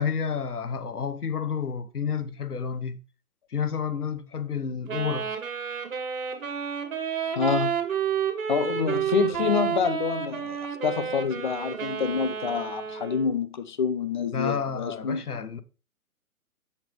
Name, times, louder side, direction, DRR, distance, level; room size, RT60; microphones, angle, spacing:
voice 1, 0.0-3.0 3.5-5.3 14.3-15.6, left 6 dB, 90° left, 1.1 m, -30 dB
Wind instrument woodwind instrument, 4.9-13.4, right 8 dB, 60° right, 2.2 m, -30 dB
voice 2, 7.4-7.7 8.5-15.2, left 6 dB, 35° left, 0.6 m, -27 dB
7.7 x 7.2 x 3.4 m
hypercardioid pair, 145°, 44 cm